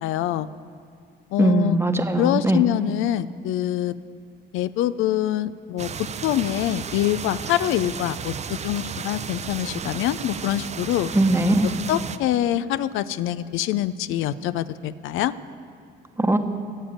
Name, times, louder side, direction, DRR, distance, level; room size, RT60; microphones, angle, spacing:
voice 1, 0.0-0.5 1.3-1.8 2.2-3.9 4.5-11.1 11.9-15.3, left 12 dB, 90° left, 15 dB, 0.4 m, -25 dB
voice 2, 1.4-2.6 11.1-11.7 16.2-16.4, right 1 dB, 10° right, 6 dB, 0.9 m, -20 dB
sound 1, 5.8-12.2, right 6 dB, 35° right, 0.5 m, -34 dB
12.5 x 7.3 x 8.6 m, 2.3 s
cardioid pair, 90°, 20 cm